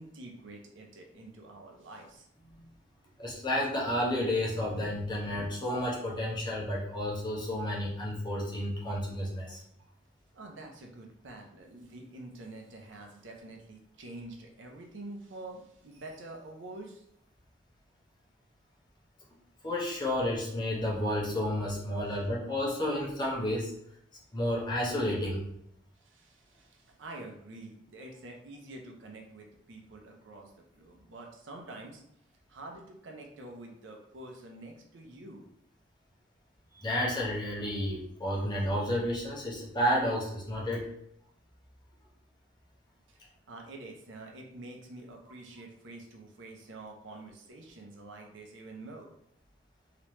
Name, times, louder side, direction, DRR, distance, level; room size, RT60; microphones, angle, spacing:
voice 1, 0.0-2.3 9.5-9.6 10.3-17.0 26.0-32.0 32.5-35.5 42.0-42.1 43.1-43.2 43.5-49.1, right 2 dB, 75° right, 1 dB, 0.6 m, -47 dB
voice 2, 3.2-9.6 19.6-23.7 24.3-25.5 36.7-40.9, left 1 dB, 25° left, -4 dB, 0.9 m, -31 dB
3.2 x 2.9 x 3.0 m, 0.73 s
head